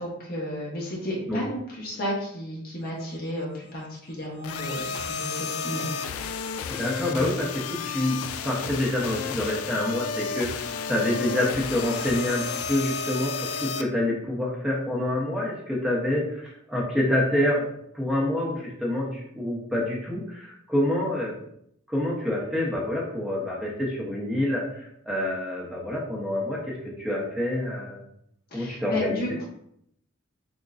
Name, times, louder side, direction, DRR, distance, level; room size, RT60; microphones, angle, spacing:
voice 1, 0.0-5.9 28.5-29.4, equal, 45° left, -4 dB, 1.0 m, -32 dB
sound 1, 4.4-13.8, left 5 dB, 90° left, 0.3 m, -32 dB
voice 2, 6.7-17.7 17.9-21.4 21.9-24.7 25.1-28.0 28.5-29.2, left 1 dB, 5° right, -4 dB, 0.8 m, -27 dB
6.1 x 2.2 x 2.5 m, 0.73 s
head